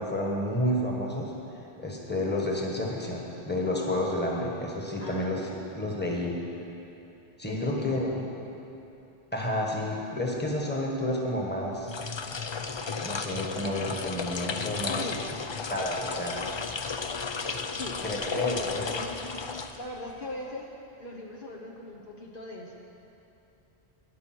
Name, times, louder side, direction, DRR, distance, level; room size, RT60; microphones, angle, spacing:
voice 1, 0.0-1.3 1.8-5.5 5.7-6.3 7.4-8.1 9.3-11.9 13.0-15.1 15.7-16.4 18.0-18.9, left 1 dB, 10° left, -1 dB, 1.5 m, -30 dB
voice 2, 5.0-5.6 7.5-8.2 14.9-15.3 17.8-18.0 18.4-19.1 19.8-20.7 20.9-22.8, left 2 dB, 55° left, -1 dB, 1.2 m, -39 dB
sound 1, 11.8-20.2, left 4 dB, 40° left, 0.4 m, -34 dB
13.0 x 9.7 x 6.1 m, 2.9 s
omnidirectional pair, 1.1 m